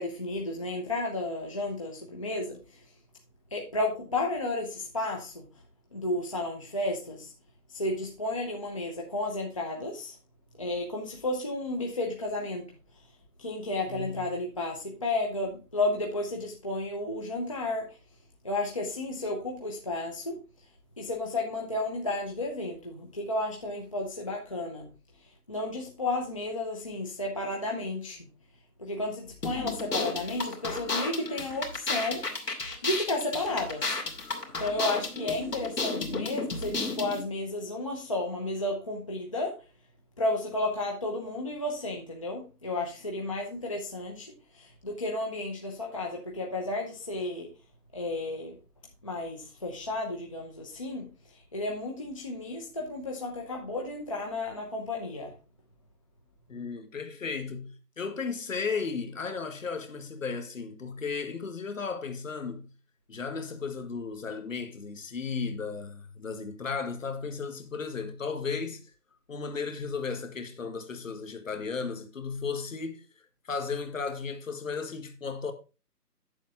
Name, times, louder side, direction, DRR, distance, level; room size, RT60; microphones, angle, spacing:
voice 1, 0.0-2.9 3.5-5.5 5.9-7.3 7.7-10.2 10.6-13.1 13.4-18.0 18.4-20.7 21.0-24.9 25.2-28.3 28.8-32.3 32.8-34.0 34.6-39.6 40.2-47.5 47.9-48.6 49.0-55.3, left 2 dB, 20° left, 0.8 m, -33 dB
voice 2, 13.9-14.3 56.5-62.7 63.1-68.9 69.3-73.1 73.5-75.5, left 5 dB, 55° left, 1.6 m, -35 dB
sound 1, 29.4-37.2, left 3 dB, 85° left, 2.7 m, -33 dB
9.3 x 7.3 x 3.6 m
figure-of-eight pair, 155°, 48 cm